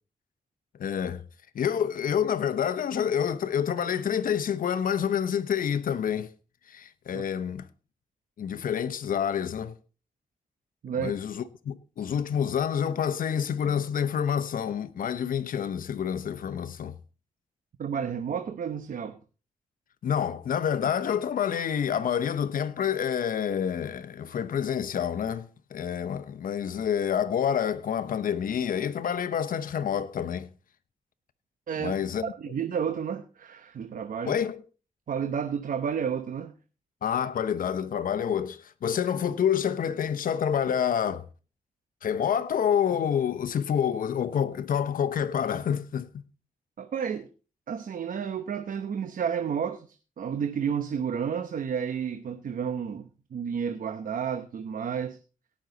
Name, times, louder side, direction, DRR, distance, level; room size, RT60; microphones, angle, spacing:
voice 1, 0.8-1.2 1.5-6.3 6.7-7.7 8.4-9.8 11.0-16.9 20.0-30.5 31.8-32.3 34.3-34.6 37.0-41.2 42.0-46.1, left 8 dB, 80° left, 0.9 m, -28 dB
voice 2, 17.8-19.2 31.7-32.0 32.2-34.4 35.1-36.5 46.8-47.3 47.7-55.2, right 7 dB, 75° right, 0.9 m, -31 dB
18.0 x 6.3 x 4.0 m
cardioid pair, 65°, 14 cm